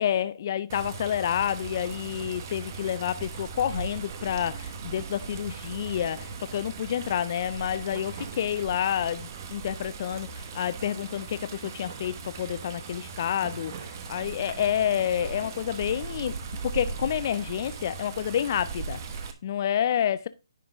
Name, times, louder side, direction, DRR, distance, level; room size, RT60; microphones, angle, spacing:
voice 1, 0.0-10.3 10.5-13.7 14.1-16.4 16.6-19.0 19.4-20.3, left 9 dB, 40° left, 0.4 m, -29 dB
Water, 0.7-19.3, right 5 dB, 35° right, 1.1 m, -38 dB
10.0 x 3.8 x 4.7 m
figure-of-eight pair, 150°, 3 cm